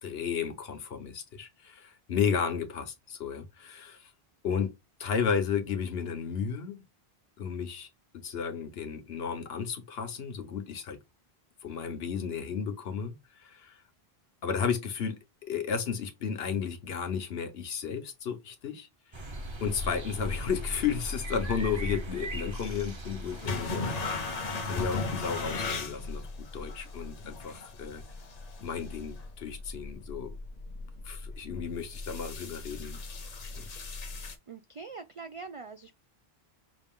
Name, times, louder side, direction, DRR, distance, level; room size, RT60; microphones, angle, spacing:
voice 1, 0.0-4.1 4.4-4.7 5.0-6.8 7.4-7.9 8.1-11.0 11.6-13.8 14.4-15.2 15.5-18.9 19.2-19.3 19.6-26.3 26.5-28.0 28.6-30.4 31.0-33.0 33.5-33.7, left 6 dB, 70° left, 1.1 m, -33 dB
sound 1, 19.1-24.6, right 1 dB, 30° right, 0.7 m, -40 dB
sound 2, 20.6-34.4, left 3 dB, 40° left, 0.8 m, -38 dB
voice 2, 34.5-36.0, right 4 dB, 60° right, 0.3 m, -43 dB
6.0 x 2.4 x 3.6 m
omnidirectional pair, 1.1 m